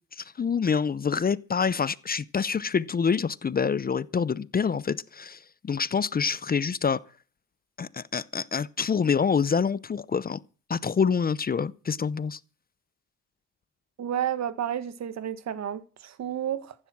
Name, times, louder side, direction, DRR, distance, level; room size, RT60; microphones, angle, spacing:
voice 1, 0.1-7.0 7.8-10.4 10.7-12.4, left 6 dB, 30° left, 0.7 m, -26 dB
voice 2, 14.0-16.7, right 10 dB, 60° right, 1.7 m, -31 dB
15.0 x 11.0 x 6.1 m
cardioid pair, 90°, 30 cm